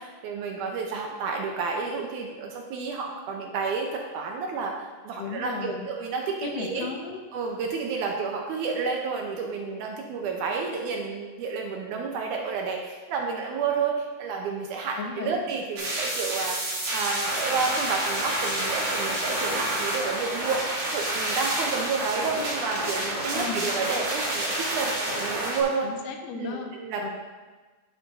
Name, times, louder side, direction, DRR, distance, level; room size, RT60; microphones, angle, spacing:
voice 1, 0.0-3.9 4.1-4.7 5.0-6.9 7.3-25.9 26.3-27.0, right 5 dB, 75° right, 1 dB, 2.0 m, -30 dB
voice 2, 5.2-5.9 6.4-7.2 15.0-15.4 23.3-23.7 25.8-26.7 27.0-27.1, left 5 dB, 80° left, 4 dB, 2.3 m, -35 dB
sound 1, 15.8-25.6, right 1 dB, 50° right, 2.6 m, -29 dB
10.0 x 8.5 x 2.6 m, 1.3 s
omnidirectional pair, 4.0 m